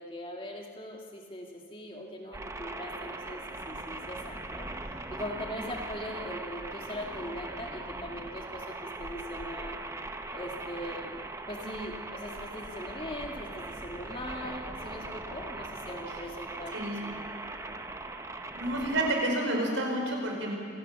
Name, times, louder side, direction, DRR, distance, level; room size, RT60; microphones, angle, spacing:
voice 1, 0.0-9.8 10.3-17.2, left 1 dB, 25° left, 0 dB, 2.3 m, -41 dB
sound 1, 2.3-19.1, right 2 dB, 15° right, 0.9 m, -40 dB
voice 2, 16.7-17.1 18.5-20.5, right 1 dB, 75° right, 0 dB, 5.3 m, -30 dB
27.0 x 18.0 x 7.0 m, 2.1 s
head